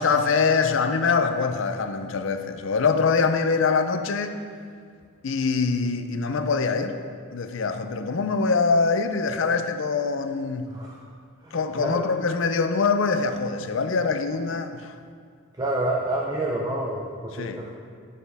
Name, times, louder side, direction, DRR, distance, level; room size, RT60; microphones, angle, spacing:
voice 1, 0.0-4.4 5.2-7.0 7.3-10.7 11.5-14.9 17.3-17.7, left 4 dB, 60° left, 8 dB, 0.5 m, -24 dB
voice 2, 10.7-11.0 11.4-12.1 15.6-17.7, right 1 dB, 20° right, -2 dB, 0.5 m, -28 dB
9.1 x 6.5 x 3.4 m, 2.1 s
head